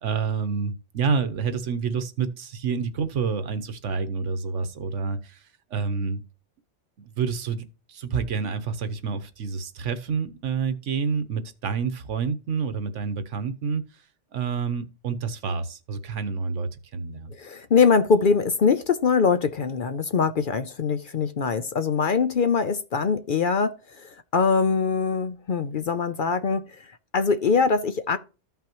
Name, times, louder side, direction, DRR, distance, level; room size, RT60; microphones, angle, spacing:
voice 1, 0.0-5.4 5.7-6.2 7.0-13.8 14.3-17.3, right 5 dB, 80° right, 1.3 m, -28 dB
voice 2, 17.3-28.2, left 5 dB, 50° left, 0.7 m, -23 dB
14.0 x 5.8 x 3.0 m
omnidirectional pair, 1.2 m